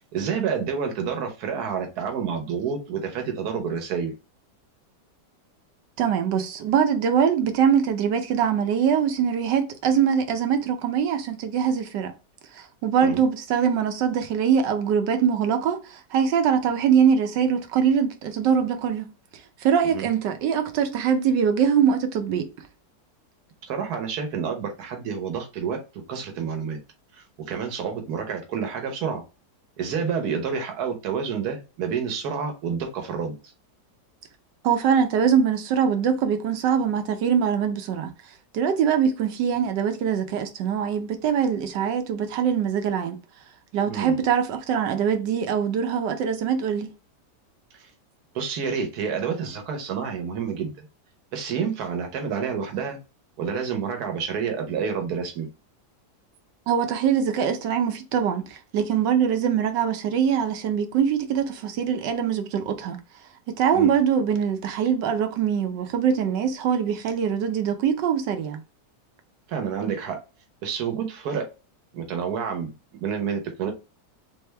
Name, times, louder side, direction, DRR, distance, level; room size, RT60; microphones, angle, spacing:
voice 1, 0.1-4.1 13.0-13.2 19.8-20.1 23.6-26.8 27.1-29.2 29.8-33.3 43.9-44.2 48.3-50.8 51.3-53.0 53.4-55.5 63.7-63.9 69.5-70.2 70.6-71.5 71.9-72.7 73.0-73.7, right 6 dB, 65° right, 1.5 m, -29 dB
voice 2, 6.0-12.1 12.5-19.1 19.6-22.5 34.6-38.1 38.5-43.2 43.7-47.0 56.7-63.0 63.5-68.6, right 7 dB, 85° right, 1.4 m, -23 dB
3.5 x 3.5 x 3.3 m
omnidirectional pair, 1.9 m